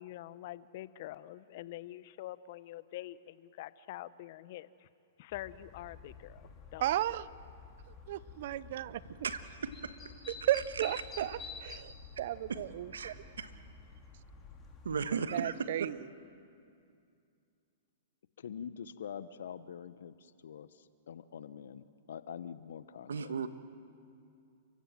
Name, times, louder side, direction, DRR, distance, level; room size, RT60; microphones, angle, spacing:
voice 1, 0.0-4.9 5.2-6.9, left 14 dB, 55° left, 0.7 m, -45 dB
sound 1, 5.3-15.0, left 4 dB, 20° left, 3.1 m, -50 dB
voice 2, 6.8-7.3 8.1-9.0 10.5-13.1 15.3-15.9, right 13 dB, 60° right, 0.6 m, -34 dB
voice 3, 12.9-13.5 14.8-15.5 23.1-23.5, right 6 dB, 85° right, 1.3 m, -35 dB
voice 4, 18.4-23.3, left 8 dB, 75° left, 1.0 m, -45 dB
29.0 x 15.5 x 7.7 m
hypercardioid pair, 130°, 0 cm